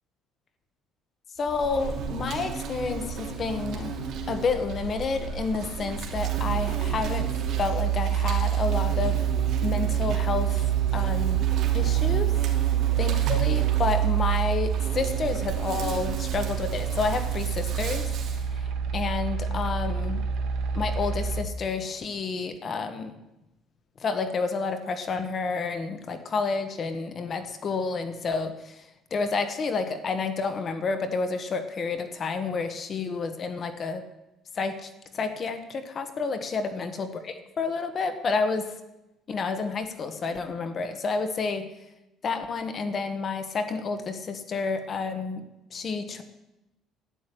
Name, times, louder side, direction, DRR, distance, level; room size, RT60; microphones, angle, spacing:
voice 1, 1.4-4.0 4.3-7.3 7.6-9.2 9.6-10.6 10.9-11.5 11.7-12.3 12.7-18.1 18.5-20.2 20.7-23.1 24.0-28.8 29.1-34.0 34.5-34.9 35.1-38.6 39.3-41.7 42.2-45.4 45.7-46.2, left 4 dB, 30° left, 9 dB, 1.3 m, -30 dB
Insect, 1.4-18.5, right 5 dB, 50° right, 2.5 m, -35 dB
sound 1, 6.1-21.4, right 10 dB, 70° right, 1.5 m, -26 dB
12.0 x 9.6 x 9.8 m, 0.94 s
cardioid pair, 165°, 0 cm